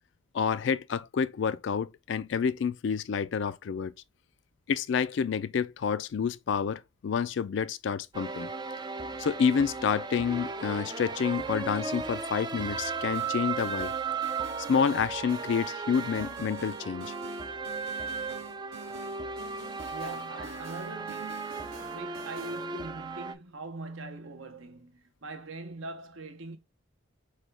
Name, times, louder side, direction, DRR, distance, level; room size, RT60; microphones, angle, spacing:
voice 1, 0.3-3.9 4.7-8.5 9.2-13.9 14.7-17.1, left 6 dB, 60° left, 0.3 m, -29 dB
sound 1, 8.1-23.3, right 5 dB, 20° right, 0.3 m, -36 dB
sound 2, 13.1-22.7, right 3 dB, 85° right, 1.9 m, -47 dB
voice 2, 19.9-26.6, right 3 dB, 70° right, 0.8 m, -42 dB
6.1 x 2.2 x 3.3 m
head